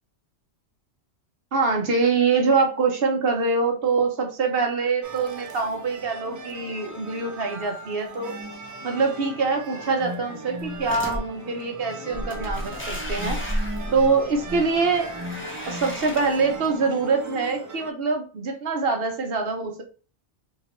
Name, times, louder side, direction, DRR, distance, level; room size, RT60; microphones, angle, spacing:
voice 1, 1.5-8.4 8.8-13.4 13.9-15.1 15.7-19.8, right 4 dB, 60° right, 3 dB, 1.0 m, -24 dB
sound 1, 5.0-17.9, right 1 dB, 30° right, 0.3 m, -38 dB
sound 2, 10.6-11.2 12.1-16.7, equal, 10° left, 0.8 m, -33 dB
2.9 x 2.9 x 4.3 m, 0.37 s
omnidirectional pair, 1.2 m